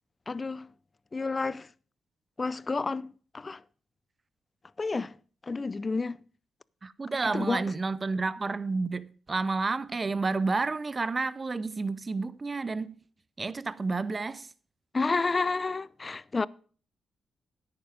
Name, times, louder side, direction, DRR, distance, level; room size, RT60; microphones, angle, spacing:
voice 1, 0.3-0.7 1.1-1.7 2.4-3.6 4.8-5.2 5.4-6.2 7.2-7.6 14.9-16.5, left 3 dB, 35° left, 0.4 m, -30 dB
voice 2, 6.8-13.0 13.4-14.5, right 3 dB, 35° right, 0.6 m, -30 dB
10.0 x 9.0 x 5.1 m
cardioid pair, 70°, 0 cm